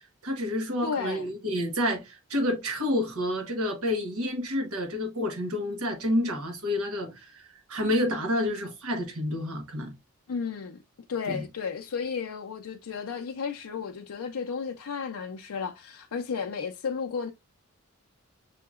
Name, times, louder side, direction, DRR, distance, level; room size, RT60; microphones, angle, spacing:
voice 1, 0.2-9.9 11.3-11.4, left 1 dB, 80° right, 1.2 m, -29 dB
voice 2, 0.8-1.3 10.3-10.8 11.1-17.3, left 6 dB, 80° left, 0.4 m, -33 dB
6.9 x 2.8 x 2.3 m
head